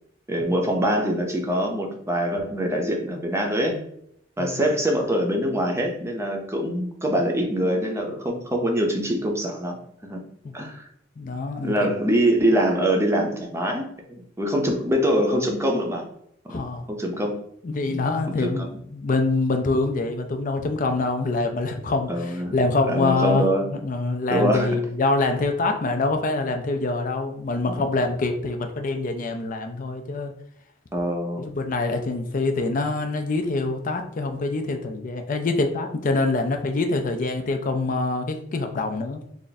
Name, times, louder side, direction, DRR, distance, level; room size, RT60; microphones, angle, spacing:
voice 1, 0.3-3.8 4.4-9.8 10.0-10.2 10.5-10.9 11.6-16.0 16.4-16.6 16.9-17.4 17.9-18.7 22.1-22.5 22.9-23.7 24.3-24.8 27.7-27.9 30.9-31.5, equal, 15° right, 2 dB, 0.6 m, -24 dB
voice 2, 11.2-11.7 16.5-16.9 17.6-23.5 23.7-30.3 31.4-39.2, left 3 dB, 45° left, 5 dB, 0.4 m, -25 dB
3.4 x 2.5 x 4.0 m, 0.71 s
head